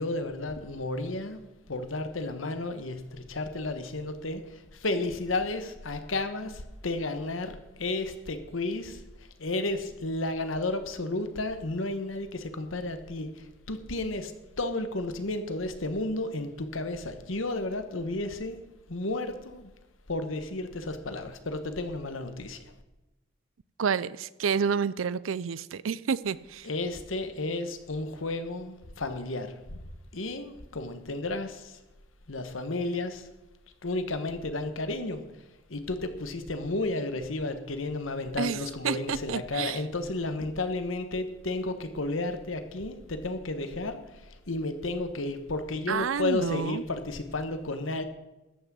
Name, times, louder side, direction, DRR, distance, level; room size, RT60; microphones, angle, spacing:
voice 1, 0.0-1.4 1.7-14.3 14.6-18.6 18.9-19.7 20.1-22.6 26.6-29.8 30.1-31.8 32.3-33.3 33.8-35.2 35.7-48.0, left 2 dB, 90° left, 9 dB, 1.3 m, -32 dB
voice 2, 23.8-26.7 38.4-38.6 38.8-39.8 45.9-46.8, right 6 dB, 85° right, 18 dB, 0.5 m, -29 dB
13.5 x 6.0 x 8.2 m, 1.0 s
head